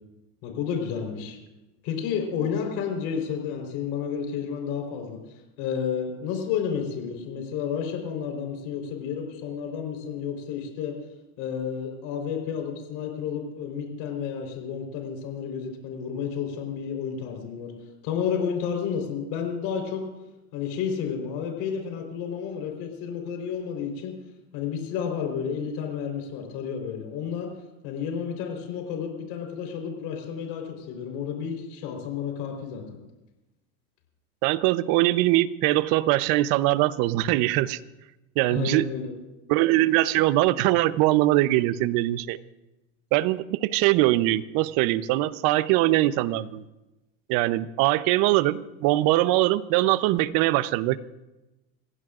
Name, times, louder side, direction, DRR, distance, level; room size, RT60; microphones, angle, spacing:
voice 1, 0.4-1.4 1.8-5.2 5.6-11.0 11.4-17.7 18.0-20.0 20.5-24.2 24.5-27.5 27.8-32.8 38.5-39.1, left 7 dB, 65° left, 2 dB, 4.2 m, -31 dB
voice 2, 34.4-37.8 38.4-38.8 39.5-42.4 43.1-46.6 47.3-51.0, right 16 dB, 60° right, 15 dB, 0.9 m, -22 dB
27.5 x 16.0 x 2.5 m, 1.0 s
supercardioid pair, 105°, 39 cm